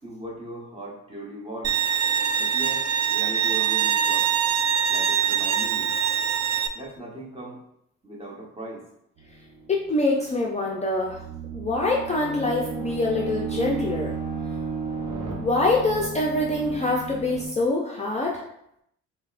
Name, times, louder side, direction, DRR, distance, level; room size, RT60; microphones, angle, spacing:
voice 1, 0.0-1.8 2.4-4.3 4.9-6.0 6.7-7.6 8.0-8.9, right 1 dB, 20° right, -3 dB, 1.0 m, -38 dB
Bowed string instrument, 1.6-6.7, right 8 dB, 60° right, 0.5 m, -23 dB
sound 1, 9.2-10.0 10.9-17.5, right 5 dB, 80° right, 0.8 m, -33 dB
voice 2, 9.7-11.2 11.5-14.1 15.4-18.4, left 2 dB, 20° left, -2 dB, 0.5 m, -25 dB
5.4 x 2.2 x 2.5 m, 0.76 s
cardioid pair, 90°, 30 cm